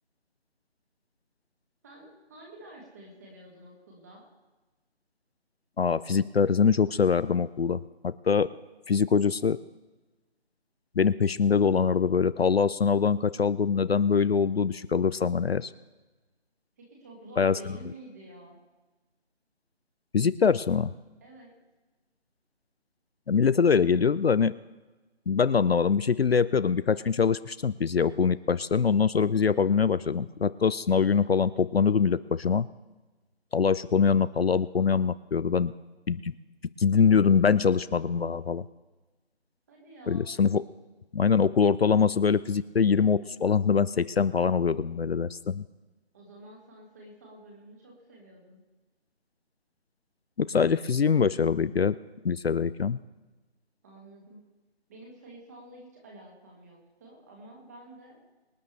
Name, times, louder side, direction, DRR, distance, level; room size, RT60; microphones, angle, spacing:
voice 1, 1.8-4.3 16.8-18.6 21.2-21.5 39.7-40.3 46.1-48.6 53.8-54.4 54.9-58.2, right 1 dB, 15° right, -1 dB, 2.1 m, -49 dB
voice 2, 5.8-7.8 8.0-8.5 8.9-9.6 11.0-15.7 17.4-17.6 20.1-20.9 23.3-24.6 25.3-32.7 33.5-35.7 36.1-36.3 36.8-38.6 40.1-40.6 41.1-45.6 50.4-52.0 52.2-53.0, left 6 dB, 65° left, 16 dB, 0.5 m, -23 dB
24.5 x 9.3 x 3.4 m, 1.2 s
figure-of-eight pair, 170°, 33 cm